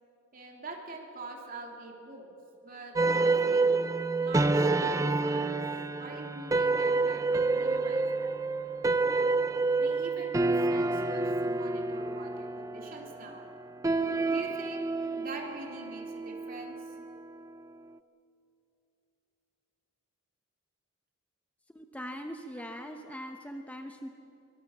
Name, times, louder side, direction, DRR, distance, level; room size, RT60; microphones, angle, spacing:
voice 1, 0.3-2.3 2.6-3.8 4.2-5.6 6.0-8.4 9.8-13.5 14.3-16.8, right 2 dB, 45° right, 0 dB, 3.5 m, -44 dB
sound 1, 3.0-17.5, right 3 dB, 15° right, 0.5 m, -28 dB
voice 2, 21.7-24.1, equal, 5° left, 4 dB, 0.9 m, -41 dB
23.5 x 22.5 x 7.4 m, 2.7 s
head